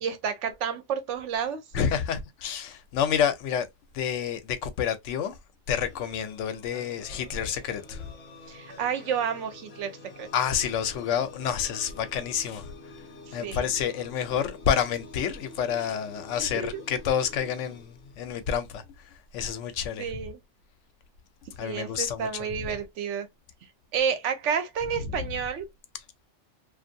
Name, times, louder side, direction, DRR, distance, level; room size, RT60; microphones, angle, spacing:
voice 1, 0.0-1.6 8.5-10.3 13.3-13.7 16.4-16.8 20.0-20.4 21.6-23.3 23.9-25.7, right 7 dB, 80° right, 0.9 m, -30 dB
voice 2, 1.7-3.7 3.9-5.4 5.7-8.1 10.3-13.1 13.3-20.2 21.6-22.7 25.0-25.4, left 8 dB, 80° left, 0.9 m, -29 dB
sound 1, 5.7-18.6, left 3 dB, 45° left, 0.9 m, -48 dB
2.5 x 2.3 x 2.6 m
omnidirectional pair, 1.3 m